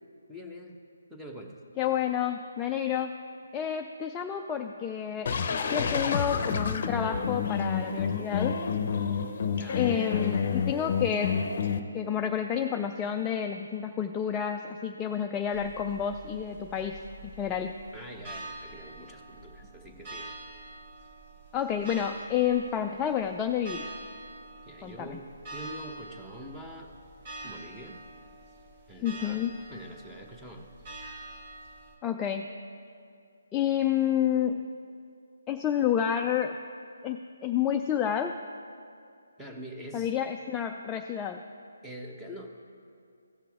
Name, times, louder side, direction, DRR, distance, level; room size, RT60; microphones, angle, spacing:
voice 1, 0.3-0.8 1.1-1.6 9.1-9.9 17.9-20.3 24.7-25.3 25.5-26.9 27.4-28.0 28.9-30.7 39.4-40.1 41.8-42.5, equal, 5° right, 0 dB, 0.9 m, -44 dB
voice 2, 1.8-3.2 3.5-8.6 9.7-11.4 11.9-17.0 17.4-17.7 21.5-23.8 24.8-25.2 29.0-29.5 32.0-32.5 33.5-34.7 35.5-36.6 37.0-38.4 39.9-41.4, left 9 dB, 15° left, 3 dB, 0.3 m, -29 dB
sound 1, 5.3-11.8, left 6 dB, 45° left, 0.7 m, -29 dB
sound 2, 15.5-31.9, right 2 dB, 35° right, 1.4 m, -46 dB
16.0 x 5.8 x 3.5 m, 2.4 s
figure-of-eight pair, 155°, 0 cm